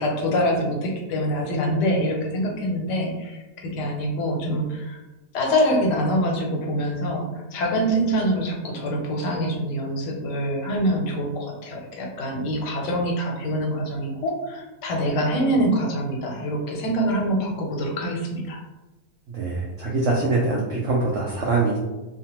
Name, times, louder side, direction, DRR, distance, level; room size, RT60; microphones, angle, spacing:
voice 1, 0.0-5.0 5.3-18.6, equal, 80° left, 0 dB, 1.2 m, -25 dB
voice 2, 19.3-21.8, right 3 dB, 80° right, -3 dB, 0.6 m, -23 dB
2.8 x 2.1 x 2.9 m, 1.1 s
omnidirectional pair, 1.8 m